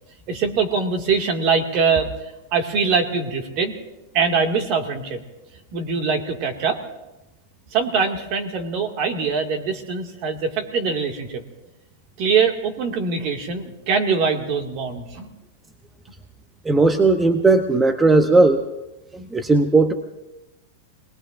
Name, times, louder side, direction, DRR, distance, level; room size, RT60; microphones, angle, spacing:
voice 1, 0.3-2.1 2.5-3.8 4.1-5.2 5.7-6.8 7.7-11.4 12.2-15.3, right 5 dB, 45° right, 4 dB, 2.1 m, -23 dB
voice 2, 16.6-18.6 19.1-19.9, right 3 dB, 10° right, 7 dB, 0.7 m, -17 dB
28.5 x 20.0 x 2.6 m, 0.98 s
supercardioid pair, 145°, 0 cm